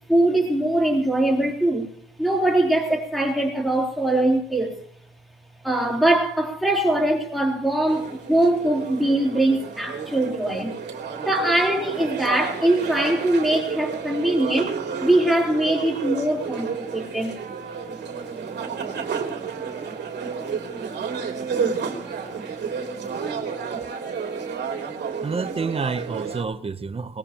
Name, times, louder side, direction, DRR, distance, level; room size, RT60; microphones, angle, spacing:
voice 1, 0.1-1.9 2.2-4.8 5.6-10.7 11.2-14.7 15.0-17.3, right 1 dB, ahead, 0 dB, 4.0 m, -22 dB
sound 1, 7.9-26.4, right 6 dB, 60° right, 3.1 m, -31 dB
voice 2, 25.2-27.2, right 5 dB, 30° right, 12 dB, 1.0 m, -28 dB
20.0 x 18.5 x 3.1 m, 0.67 s
cardioid pair, 90°, 20 cm